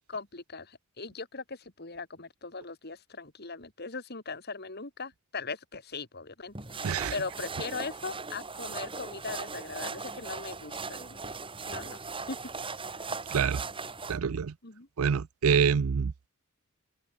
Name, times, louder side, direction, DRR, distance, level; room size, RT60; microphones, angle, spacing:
voice 1, 0.1-11.2 11.7-12.4 12.6-12.7 14.6-14.9, left 4 dB, 50° left, 2.9 m, -40 dB
sound 1, 6.6-14.2, right 4 dB, 25° right, 5.0 m, -39 dB
voice 2, 13.3-13.6 14.1-14.5 15.0-16.1, right 6 dB, 85° right, 0.5 m, -26 dB
open air
head